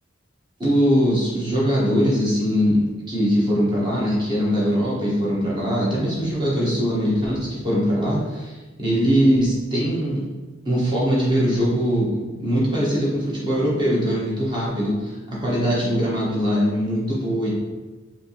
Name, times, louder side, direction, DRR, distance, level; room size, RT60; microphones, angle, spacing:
voice 1, 0.6-10.2 10.6-17.5, equal, 25° right, -6 dB, 1.2 m, -21 dB
4.5 x 2.8 x 2.9 m, 1.2 s
head